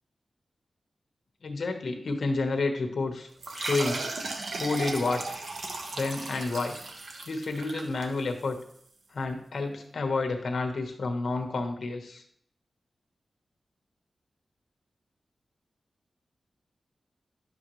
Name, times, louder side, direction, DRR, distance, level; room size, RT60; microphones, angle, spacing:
voice 1, 1.4-3.3 3.5-4.1 4.6-5.2 6.0-6.8 7.3-8.6 9.1-12.2, left 3 dB, 60° left, 4 dB, 1.3 m, -30 dB
sound 1, 3.4-8.6, right 3 dB, 70° right, 1.1 m, -36 dB
11.0 x 7.5 x 3.2 m, 0.64 s
wide cardioid pair, 175°, 0 cm